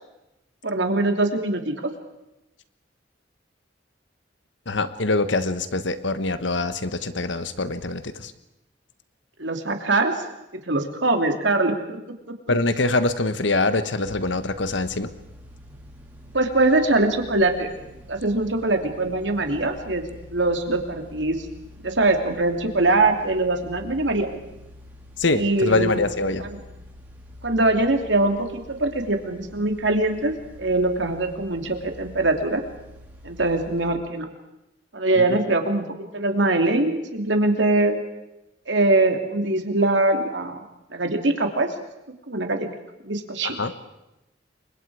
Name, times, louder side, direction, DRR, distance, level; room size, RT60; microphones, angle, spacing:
voice 1, 0.6-1.9 9.4-10.2 10.7-12.0 12.3-12.4 16.3-17.7 18.1-20.0 20.3-21.4 21.8-24.3 25.3-26.0 26.4-26.6 27.4-32.6 33.2-34.3 34.9-35.9 36.1-38.0 38.7-40.6 40.9-41.7 42.3-42.7 43.0-43.6, right 2 dB, 75° right, 5 dB, 2.8 m, -22 dB
voice 2, 4.7-8.3 12.5-15.1 25.2-26.4 35.2-35.3 43.4-43.7, left 2 dB, 80° left, 11 dB, 1.4 m, -24 dB
sound 1, 14.0-33.9, left 1 dB, 10° right, 4.9 m, -45 dB
29.0 x 24.5 x 4.9 m, 0.94 s
head